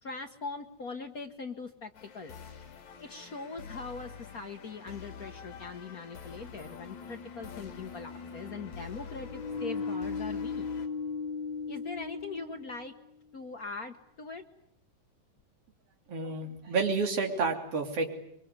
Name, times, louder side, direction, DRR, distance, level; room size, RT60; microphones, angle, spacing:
voice 1, 0.0-2.3 3.0-10.7 11.7-12.9 13.3-14.4, left 4 dB, 60° left, 5 dB, 0.9 m, -41 dB
sound 1, 1.9-10.9, left 6 dB, 75° left, 3.8 m, -47 dB
sound 2, 6.2-13.1, left 5 dB, 40° left, 4.2 m, -38 dB
voice 2, 16.1-18.1, right 4 dB, 55° right, 3 dB, 4.1 m, -30 dB
25.0 x 23.5 x 9.6 m, 0.76 s
omnidirectional pair, 3.3 m